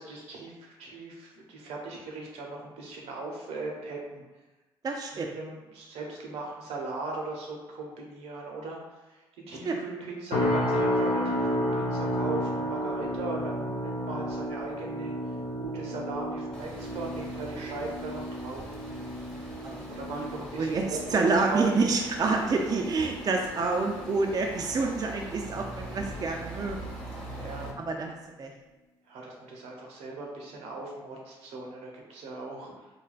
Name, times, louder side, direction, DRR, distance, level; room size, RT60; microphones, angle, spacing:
voice 1, 0.0-4.2 5.3-15.1 15.6-18.7 19.9-21.7 25.8-26.2 27.4-27.7 29.1-32.9, right 3 dB, 75° right, -1 dB, 0.6 m, -38 dB
voice 2, 4.8-5.3 9.6-9.8 19.6-19.9 20.2-20.3 20.6-26.9 27.8-28.5, right 3 dB, 35° right, 2 dB, 0.3 m, -28 dB
sound 1, 10.3-25.5 25.9-26.3 26.8-27.0, equal, 65° left, 0.6 m, -33 dB
sound 2, 16.5-27.7, right 1 dB, 5° left, 0.8 m, -43 dB
3.2 x 2.2 x 2.4 m, 1.1 s
hypercardioid pair, 55°, 11 cm